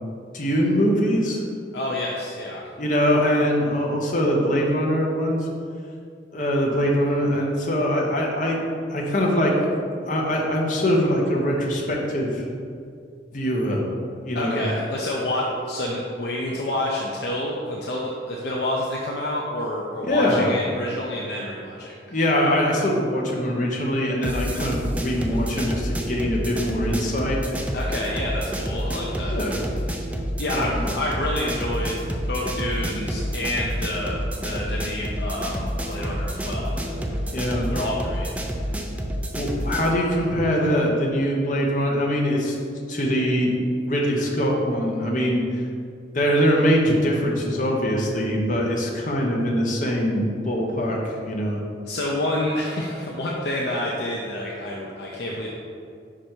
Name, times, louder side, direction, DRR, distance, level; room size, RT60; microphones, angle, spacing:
voice 1, 0.3-1.4 2.8-5.5 6.3-8.6 8.9-9.5 10.0-12.4 13.3-13.9 14.2-14.6 20.1-20.5 22.1-27.4 29.2-29.6 30.5-30.8 37.3-37.7 39.3-42.6 42.9-43.5 43.9-45.4 46.1-51.6, equal, 45° left, -2 dB, 1.0 m, -23 dB
voice 2, 1.7-2.6 14.3-22.1 27.7-29.4 29.9-30.1 30.4-37.0 37.7-38.3 51.8-55.5, left 1 dB, 60° left, -3 dB, 0.6 m, -28 dB
sound 1, 24.2-40.0, equal, 5° right, 0.4 m, -29 dB
5.3 x 5.0 x 4.5 m, 2.3 s
head